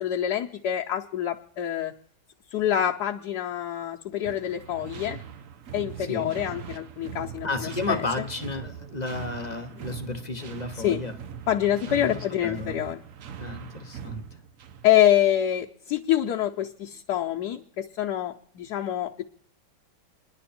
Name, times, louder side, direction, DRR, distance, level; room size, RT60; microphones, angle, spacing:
voice 1, 0.0-1.9 2.5-5.2 5.7-8.0 10.8-11.0 11.5-13.0 14.8-19.2, left 11 dB, 65° left, 1 dB, 1.2 m, -26 dB
sound 1, 4.2-15.0, right 8 dB, 60° right, 0.9 m, -41 dB
voice 2, 6.0-6.4 7.4-11.2 11.9-12.8 13.4-14.2, left 3 dB, 30° left, 6 dB, 0.8 m, -33 dB
28.5 x 10.5 x 4.3 m, 0.67 s
omnidirectional pair, 2.0 m